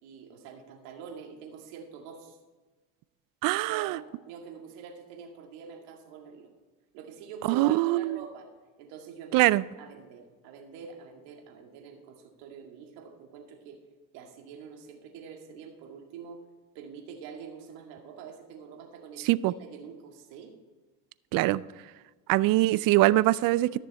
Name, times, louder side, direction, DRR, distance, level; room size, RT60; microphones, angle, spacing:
voice 1, 0.0-2.4 3.5-6.5 6.9-8.5 8.8-9.5 9.8-13.8 14.1-16.4 16.7-20.5, right 6 dB, 80° right, 2 dB, 2.2 m, -45 dB
voice 2, 3.4-4.0 7.5-8.2 9.3-9.6 19.3-19.5 21.3-21.6 22.3-23.8, right 17 dB, 55° right, 19 dB, 0.5 m, -23 dB
14.0 x 6.7 x 4.2 m, 1.3 s
supercardioid pair, 105°, 41 cm